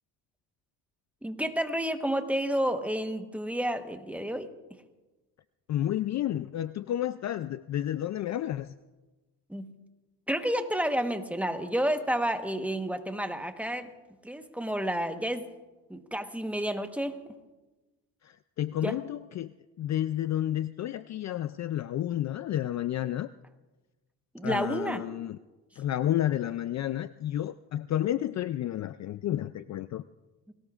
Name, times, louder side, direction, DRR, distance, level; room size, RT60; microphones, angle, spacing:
voice 1, 1.2-4.5 9.5-9.8 10.3-13.9 14.2-15.5 15.9-17.2 18.8-19.0 24.3-25.0 30.5-30.6, right 1 dB, 5° right, 6 dB, 1.1 m, -30 dB
voice 2, 5.7-8.7 18.2-23.3 24.4-25.4 25.8-30.0, left 12 dB, 45° left, 13 dB, 0.4 m, -31 dB
28.5 x 18.5 x 2.4 m, 1.2 s
cardioid pair, 110°, 40 cm